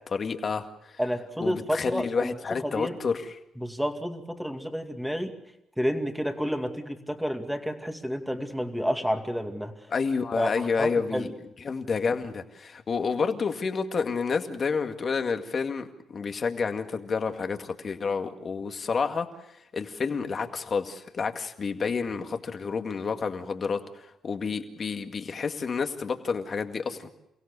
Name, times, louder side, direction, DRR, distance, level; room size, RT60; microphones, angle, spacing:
voice 1, 0.1-0.7 1.4-3.4 9.9-11.3 11.6-19.3 19.7-23.8 24.2-27.1, left 5 dB, 45° left, 6 dB, 2.1 m, -29 dB
voice 2, 1.0-2.3 2.6-3.0 3.6-5.3 5.8-9.7 10.4-11.3, equal, ahead, 5 dB, 2.5 m, -30 dB
29.0 x 16.5 x 6.9 m, 0.84 s
cardioid pair, 90°, 0 cm